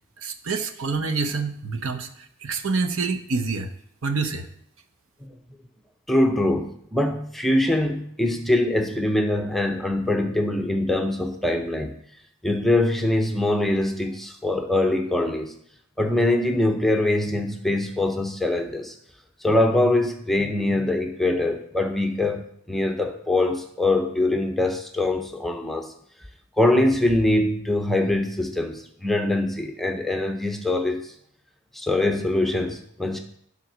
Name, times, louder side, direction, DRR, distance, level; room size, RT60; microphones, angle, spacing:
voice 1, 0.2-3.7 4.0-4.5, right 4 dB, 65° right, 7 dB, 0.8 m, -27 dB
voice 2, 6.1-11.9 12.4-15.5 16.0-18.9 19.4-25.9 26.6-31.1 31.7-33.2, left 1 dB, ahead, 4 dB, 0.7 m, -23 dB
12.0 x 4.0 x 6.1 m, 0.67 s
head